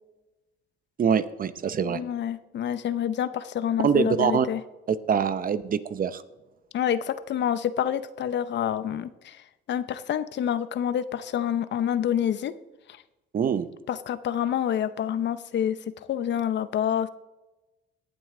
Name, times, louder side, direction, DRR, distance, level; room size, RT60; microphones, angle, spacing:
voice 1, 1.0-2.0 3.8-4.5 4.9-6.2 13.3-13.7, right 7 dB, 45° right, 13 dB, 0.7 m, -24 dB
voice 2, 1.8-4.6 6.7-9.4 9.7-12.5 13.9-15.8 16.1-17.1, left 9 dB, 65° left, 14 dB, 0.7 m, -27 dB
18.0 x 7.7 x 3.8 m, 1.1 s
cardioid pair, 90°, 20 cm